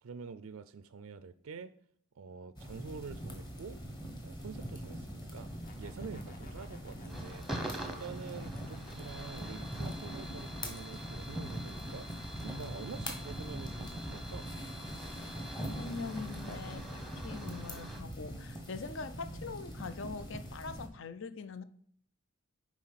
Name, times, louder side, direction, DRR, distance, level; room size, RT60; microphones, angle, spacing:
voice 1, 0.0-1.7 2.2-3.8 4.2-5.5 5.8-7.5 7.8-14.5, right 5 dB, 70° right, 13 dB, 0.4 m, -47 dB
sound 1, 2.6-20.9, equal, 20° left, 1.3 m, -42 dB
sound 2, 5.3-10.3, left 3 dB, 40° left, 0.9 m, -58 dB
sound 3, 7.1-18.0, right 1 dB, ahead, 0.9 m, -47 dB
voice 2, 15.0-21.6, left 4 dB, 55° left, 12 dB, 0.5 m, -43 dB
7.4 x 5.0 x 5.7 m, 0.64 s
head